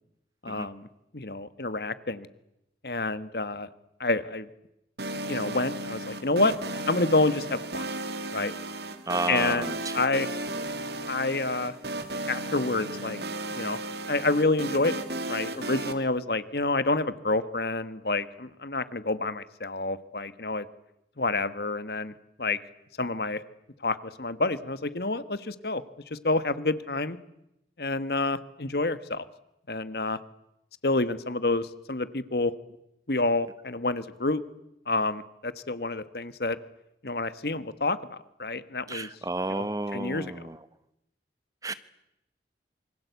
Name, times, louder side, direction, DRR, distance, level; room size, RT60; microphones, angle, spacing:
voice 1, 0.4-0.9 1.1-2.3 2.8-3.7 4.0-4.5 5.3-6.5 6.9-7.9 8.3-8.5 9.3-10.3 11.1-11.7 12.3-13.2 13.5-13.8 14.1-15.0 15.3-20.7 21.2-22.1 22.4-22.6 23.0-23.4 23.8-27.2 27.8-29.3 29.7-30.2 30.8-32.5 33.1-34.4 34.9-36.6 37.0-39.1 39.5-39.6 39.9-40.4, left 2 dB, 60° left, 14 dB, 1.4 m, -28 dB
sound 1, 5.0-15.9, right 2 dB, 70° right, 2.4 m, -35 dB
voice 2, 9.1-9.8 38.9-40.6 41.6-41.7, right 2 dB, 20° right, 14 dB, 1.0 m, -31 dB
27.0 x 24.5 x 8.2 m, 0.85 s
head